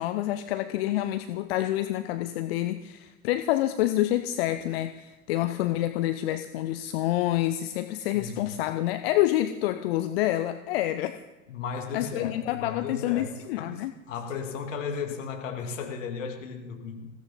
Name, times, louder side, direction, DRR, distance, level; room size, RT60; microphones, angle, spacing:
voice 1, 0.0-11.1 11.9-13.9, left 14 dB, 45° left, 10 dB, 0.7 m, -27 dB
voice 2, 8.1-8.5 11.5-17.1, left 6 dB, 60° left, 3 dB, 2.6 m, -35 dB
21.0 x 16.0 x 4.2 m, 1.1 s
figure-of-eight pair, 85°, 42 cm